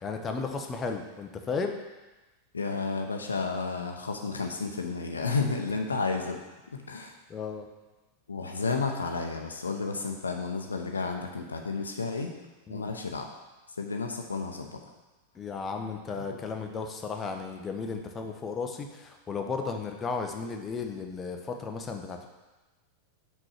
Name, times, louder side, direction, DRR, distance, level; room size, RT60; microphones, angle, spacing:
voice 1, 0.0-1.8 7.3-7.7 12.7-12.8 15.4-22.3, left 4 dB, 20° left, 3 dB, 0.8 m, -34 dB
voice 2, 2.5-6.4 6.9-7.1 8.3-12.3 12.7-13.3 13.8-14.8 16.2-16.4 17.9-18.0, left 4 dB, 75° left, 3 dB, 0.8 m, -32 dB
6.1 x 4.5 x 6.5 m, 1.1 s
figure-of-eight pair, 90°, 0 cm